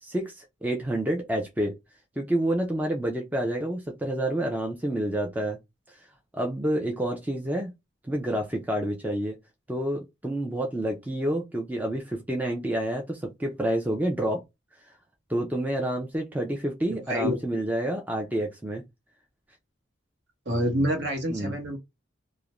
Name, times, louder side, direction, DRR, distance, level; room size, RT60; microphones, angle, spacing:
voice 1, 0.0-1.8 2.2-5.6 6.3-7.7 8.1-9.4 9.7-14.4 15.3-18.8 21.3-21.5, right 1 dB, 10° right, 0.4 m, -28 dB
voice 2, 16.9-17.4 20.5-21.8, equal, 60° right, 1.0 m, -27 dB
2.4 x 2.0 x 2.9 m
head